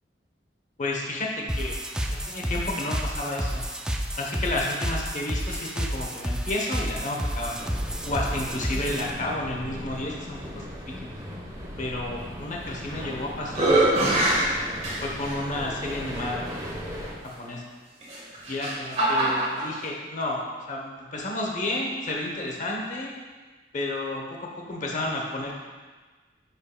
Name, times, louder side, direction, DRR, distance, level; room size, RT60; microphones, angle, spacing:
voice 1, 0.8-1.7 2.1-3.7 4.2-7.6 8.0-11.1 11.8-14.2 15.0-16.5 17.4-17.6 18.5-23.1 23.7-25.6, left 2 dB, 45° left, -1 dB, 0.9 m, -31 dB
sound 1, 1.5-9.1, equal, 5° right, 0.4 m, -30 dB
sound 2, 7.5-17.1, equal, 20° right, 0.9 m, -38 dB
sound 3, 12.7-13.1 13.5-15.4 16.1-16.2 18.0-19.7, right 1 dB, 40° right, 1.5 m, -24 dB
9.7 x 5.3 x 2.2 m, 1.3 s
head